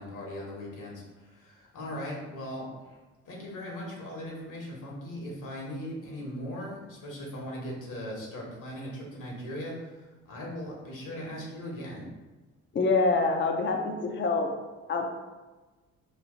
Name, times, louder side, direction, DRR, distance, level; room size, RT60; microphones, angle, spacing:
voice 1, 0.0-3.0 3.2-12.0, equal, 60° left, -2 dB, 1.4 m, -39 dB
voice 2, 12.7-14.5 14.9-15.1, left 3 dB, 30° left, 3 dB, 0.6 m, -26 dB
3.2 x 2.6 x 3.8 m, 1.2 s
hypercardioid pair, 60°, 35 cm